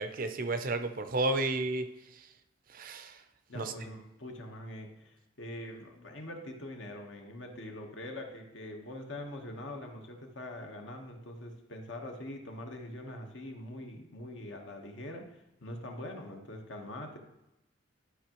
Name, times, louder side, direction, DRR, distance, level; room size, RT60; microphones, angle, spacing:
voice 1, 0.0-1.9 2.7-3.2 3.5-3.7, right 2 dB, 45° right, 9 dB, 0.5 m, -32 dB
voice 2, 3.5-17.2, left 1 dB, 65° left, 3 dB, 1.1 m, -43 dB
11.5 x 5.6 x 3.0 m, 0.92 s
head